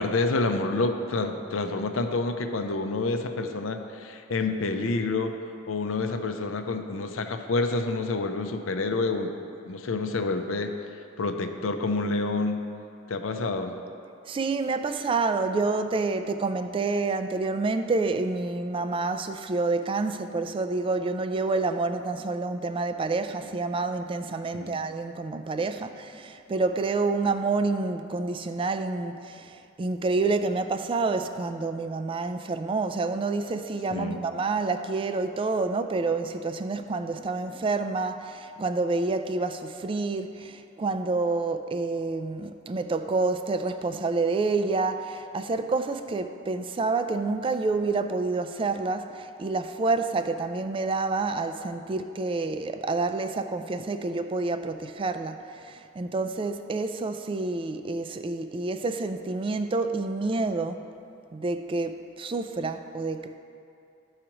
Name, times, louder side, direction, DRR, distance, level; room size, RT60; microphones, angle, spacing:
voice 1, 0.0-5.4 5.7-9.3 9.6-10.7 11.2-12.6 13.1-13.7 24.5-24.8 33.9-34.2, left 3 dB, 80° left, 6 dB, 0.6 m, -28 dB
voice 2, 14.3-60.8 61.3-63.4, right 3 dB, 25° right, 9 dB, 0.3 m, -28 dB
13.0 x 4.8 x 3.0 m, 2.6 s
head